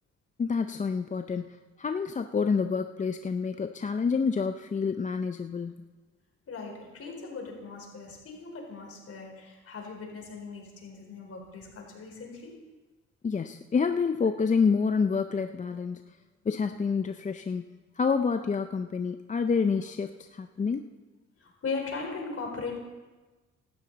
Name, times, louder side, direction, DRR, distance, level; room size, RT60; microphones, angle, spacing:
voice 1, 0.4-5.9 13.2-16.0 16.5-17.7 18.0-20.8, left 5 dB, 25° left, 8 dB, 0.5 m, -28 dB
voice 2, 6.5-12.5 21.4-22.8, left 4 dB, 50° left, 1 dB, 4.3 m, -38 dB
16.5 x 12.5 x 4.0 m, 1.2 s
cardioid pair, 90°, 30 cm